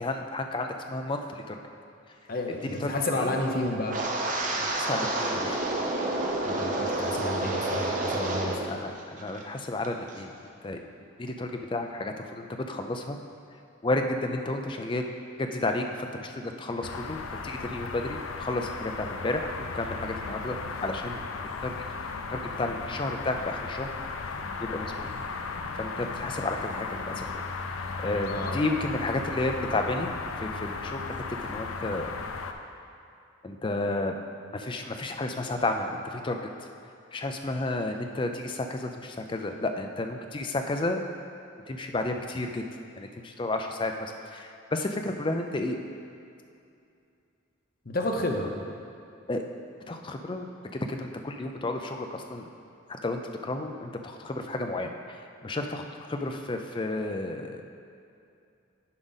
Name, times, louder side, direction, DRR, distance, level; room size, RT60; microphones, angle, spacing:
voice 1, 0.0-1.6 2.8-3.4 4.6-5.6 8.7-10.3 10.6-10.8 11.2-13.2 13.8-15.1 15.4-19.5 19.7-21.2 21.6-21.7 22.3-23.9 24.6-25.1 25.8-27.3 28.0-31.2 31.4-32.1 33.4-34.1 34.5-36.7 37.1-41.0 41.7-42.6 43.0-45.8 49.3-49.4 49.9-52.5 52.9-57.6, left 2 dB, 25° left, 4 dB, 0.4 m, -32 dB
voice 2, 2.3-4.0 6.4-8.6 28.3-28.6 47.8-48.5, left 2 dB, 45° left, 2 dB, 0.8 m, -30 dB
Wind, 3.9-8.7 9.0-9.4 9.8-10.1, right 2 dB, 40° right, 0.7 m, -29 dB
sound 1, 16.8-32.5, left 4 dB, 85° left, 0.5 m, -36 dB
9.7 x 5.1 x 4.0 m, 2.6 s
head